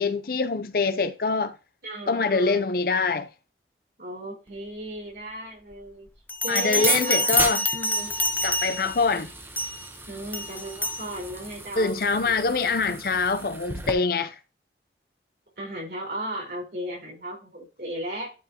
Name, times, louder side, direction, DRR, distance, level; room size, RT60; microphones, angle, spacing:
voice 1, 0.0-1.6 2.1-3.3 6.5-7.6 8.4-9.3 11.8-14.4, left 4 dB, 55° left, 0.6 m, -24 dB
voice 2, 1.8-2.7 4.0-6.1 6.4-7.4 7.7-8.1 10.1-11.9 12.2-12.6 15.6-18.3, right 1 dB, 55° right, 4.3 m, -36 dB
Bell, 6.3-9.0 9.6-9.9 10.3-11.1, left 2 dB, 10° left, 0.5 m, -27 dB
sound 1, 6.7-13.9, right 2 dB, 15° right, 0.9 m, -34 dB
12.0 x 4.6 x 2.9 m
head